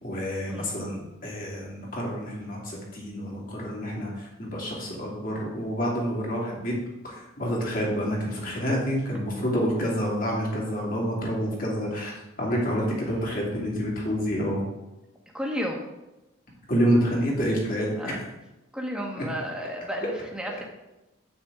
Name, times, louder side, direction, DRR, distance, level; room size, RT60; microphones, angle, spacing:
voice 1, 0.0-6.8 7.0-14.6 16.7-18.2 19.2-19.3, equal, 45° left, -3 dB, 2.6 m, -28 dB
voice 2, 15.3-15.8 18.0-18.2 18.7-20.7, equal, 5° right, -1 dB, 1.4 m, -32 dB
9.6 x 8.3 x 3.6 m, 0.98 s
head